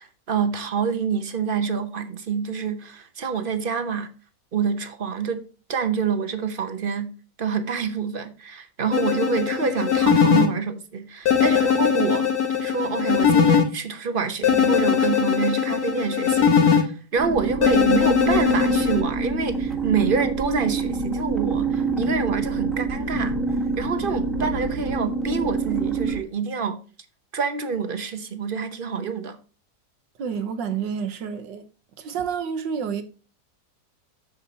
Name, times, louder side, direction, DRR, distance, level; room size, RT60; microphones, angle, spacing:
voice 1, 0.0-4.1 4.5-5.4 5.7-7.1 7.4-12.3 12.6-23.4 23.8-26.8 27.3-29.4, right 5 dB, 45° right, 0.7 m, -27 dB
sound 1, 8.9-10.5 11.3-13.6 14.4-16.8 17.6-19.0, left 7 dB, 60° left, 1.6 m, -20 dB
sound 2, 17.2-26.2, right 3 dB, ahead, 1.1 m, -26 dB
voice 2, 30.2-31.6 32.0-33.0, right 7 dB, 85° right, 1.7 m, -29 dB
8.1 x 7.1 x 2.8 m
omnidirectional pair, 1.9 m